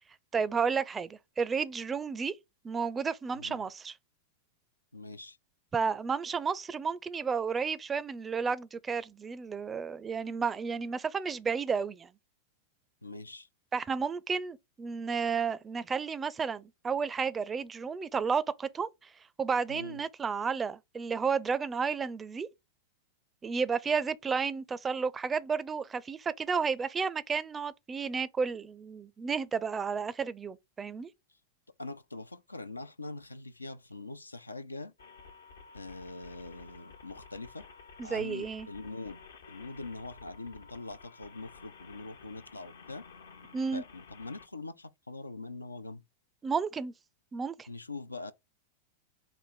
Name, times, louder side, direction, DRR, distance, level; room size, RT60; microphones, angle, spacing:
voice 1, 0.3-2.3 2.6-4.0 5.7-12.1 13.7-19.1 19.4-22.5 23.4-31.1 38.0-38.7 43.5-43.8 46.4-46.9 47.3-47.7, right 5 dB, 20° right, 0.4 m, -32 dB
voice 2, 4.9-5.4 13.0-13.5 19.7-20.0 31.8-34.9 35.7-37.7 38.0-43.0 43.7-46.0 47.7-48.3, left 3 dB, 90° left, 0.4 m, -43 dB
sound 1, 35.0-44.5, left 5 dB, 70° left, 0.7 m, -53 dB
4.3 x 2.5 x 4.7 m
figure-of-eight pair, 95°, 0 cm